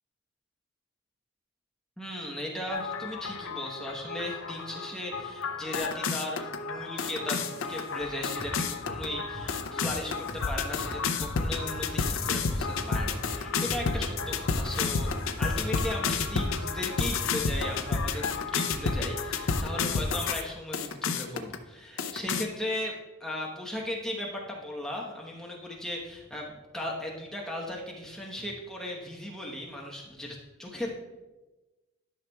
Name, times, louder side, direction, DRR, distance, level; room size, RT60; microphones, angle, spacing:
voice 1, 2.0-15.1 15.4-22.9 23.2-30.9, left 1 dB, 5° left, -2 dB, 1.0 m, -37 dB
sound 1, 2.7-20.4 20.7-21.6 22.0-22.5, left 4 dB, 75° left, 0.5 m, -31 dB
sound 2, 8.0-17.0, right 1 dB, 20° right, 1.0 m, -43 dB
12.0 x 5.8 x 2.3 m, 1.1 s
head